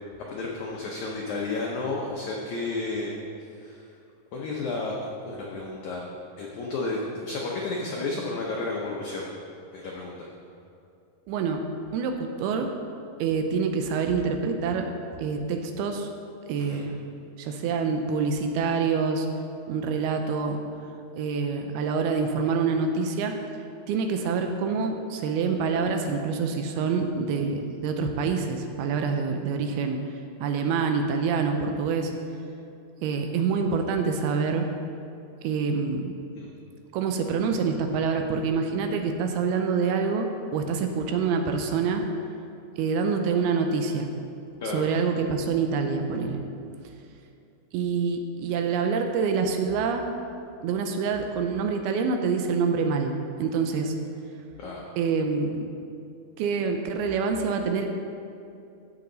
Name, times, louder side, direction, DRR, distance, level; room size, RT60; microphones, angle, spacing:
voice 1, 0.3-3.1 3.6-3.9 4.3-4.9 5.2-6.0 6.4-9.3 9.7-10.3 16.7-16.8 36.3-36.5 44.6-44.9 54.6-54.8, left 3 dB, 85° left, -2 dB, 1.6 m, -32 dB
voice 2, 11.3-11.6 11.9-12.7 13.2-14.9 15.2-16.1 16.5-16.9 17.4-19.3 19.7-20.6 21.2-23.3 23.9-30.0 30.4-32.1 33.0-34.7 35.4-36.2 36.9-42.0 42.8-44.1 44.7-46.4 47.7-50.2 50.6-53.1 53.4-53.9 55.0-55.7 56.4-57.9, right 5 dB, 80° right, 5 dB, 2.5 m, -26 dB
15.5 x 6.3 x 3.9 m, 2.6 s
omnidirectional pair, 4.7 m